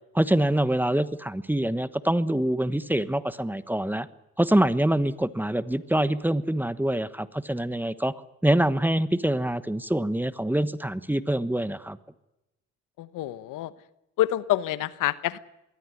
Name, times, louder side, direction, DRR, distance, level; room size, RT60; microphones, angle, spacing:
voice 1, 0.1-4.1 4.4-8.1 8.4-12.0, right 1 dB, 5° right, 14 dB, 1.2 m, -25 dB
voice 2, 13.0-13.7 14.2-15.4, left 14 dB, 75° left, 16 dB, 1.1 m, -27 dB
22.5 x 16.0 x 9.4 m, 0.93 s
supercardioid pair, 75°, 32 cm